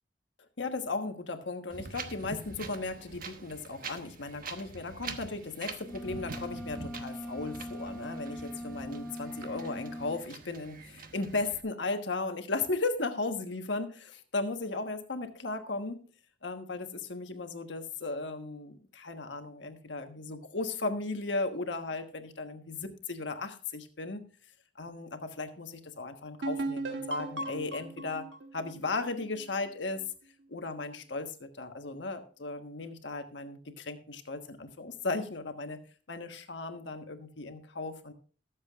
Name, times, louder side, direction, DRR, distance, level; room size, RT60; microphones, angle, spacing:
voice 1, 0.6-16.0 16.4-24.2 24.8-28.2 28.5-30.0 30.5-35.8 36.1-38.1, left 3 dB, 80° left, 7 dB, 1.3 m, -36 dB
Wind, 1.7-11.6, right 4 dB, 50° right, 1.1 m, -45 dB
sound 1, 5.8-10.3, left 1 dB, 5° left, 0.7 m, -41 dB
sound 2, 26.4-30.0, right 2 dB, 80° right, 1.3 m, -37 dB
21.5 x 7.4 x 2.4 m, 0.40 s
head